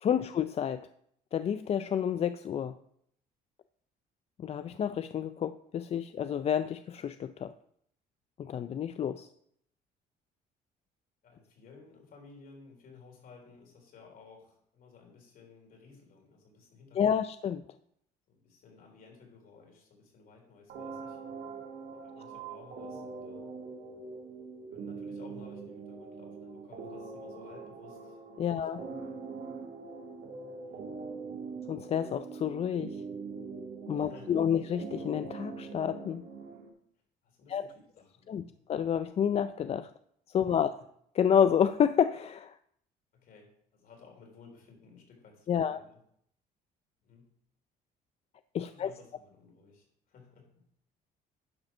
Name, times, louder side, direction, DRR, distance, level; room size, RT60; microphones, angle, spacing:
voice 1, 0.0-0.9 1.3-2.7 4.4-7.5 8.4-9.3 17.0-17.6 28.4-28.8 31.7-33.0 33.9-36.2 37.5-37.7 38.3-38.4 38.7-39.9 40.3-40.7 41.1-42.5 45.5-45.8 48.5-48.9, left 8 dB, 35° left, 12 dB, 0.4 m, -29 dB
voice 2, 11.2-17.2 18.3-21.2 22.0-23.4 24.7-29.3 30.6-30.9 33.9-34.4 37.2-38.6 40.4-40.7 43.1-46.0 47.0-47.3 48.6-50.8, left 4 dB, 60° left, 1 dB, 3.8 m, -56 dB
sound 1, 20.7-36.7, right 4 dB, 65° right, 1.9 m, -43 dB
10.5 x 5.2 x 6.0 m, 0.69 s
cardioid pair, 110°, 17 cm